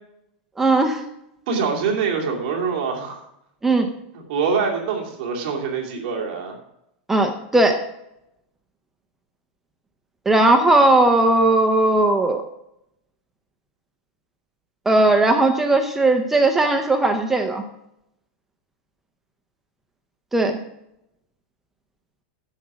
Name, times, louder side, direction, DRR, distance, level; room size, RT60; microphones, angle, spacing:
voice 1, 0.6-1.0 3.6-3.9 7.1-7.8 10.3-12.4 14.9-17.6 20.3-20.6, right 2 dB, 5° right, 5 dB, 0.6 m, -17 dB
voice 2, 1.5-3.2 4.3-6.6, right 5 dB, 45° right, 0 dB, 2.7 m, -24 dB
10.5 x 7.5 x 6.0 m, 0.82 s
supercardioid pair, 175°, 5 cm